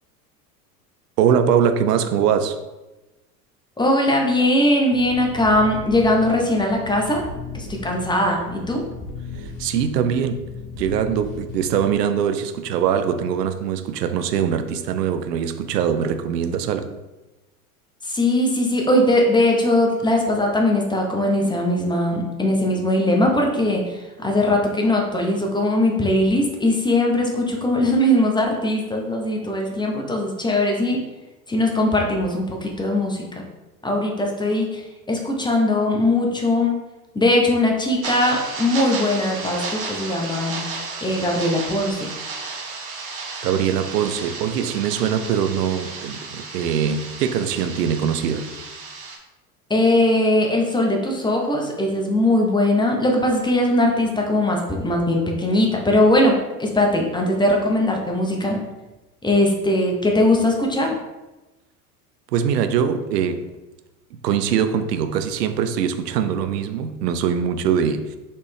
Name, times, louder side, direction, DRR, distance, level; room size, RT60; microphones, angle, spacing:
voice 1, 1.2-2.6 9.4-10.5 10.7-16.9 43.4-48.5 62.3-63.5 64.2-68.2, right 8 dB, 85° right, 0.6 m, -22 dB
voice 2, 3.8-7.2 7.5-8.8 18.0-31.0 31.5-33.2 33.8-34.8 35.1-36.7 37.1-40.6 41.0-42.1 49.7-56.3 56.6-58.6 59.2-60.9, left 1 dB, 10° left, 0.7 m, -20 dB
sound 1, 4.9-12.0, left 5 dB, 55° left, 1.5 m, -36 dB
sound 2, 38.0-49.2, right 4 dB, 50° right, 1.2 m, -33 dB
4.1 x 3.4 x 3.3 m
hypercardioid pair, 90°, 47 cm